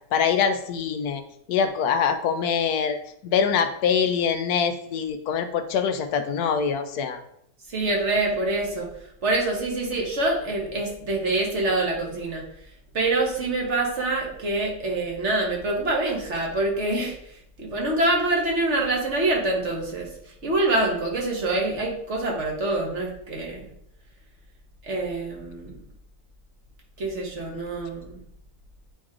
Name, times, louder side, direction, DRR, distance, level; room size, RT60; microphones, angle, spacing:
voice 1, 0.1-1.2 1.5-3.0 3.2-7.2, left 7 dB, 80° left, 8 dB, 1.2 m, -24 dB
voice 2, 7.7-8.9 9.2-12.4 12.9-20.1 20.4-23.7 24.8-25.8 27.0-28.2, right 2 dB, 50° right, -1 dB, 1.5 m, -25 dB
8.6 x 3.2 x 3.6 m, 0.71 s
omnidirectional pair, 1.6 m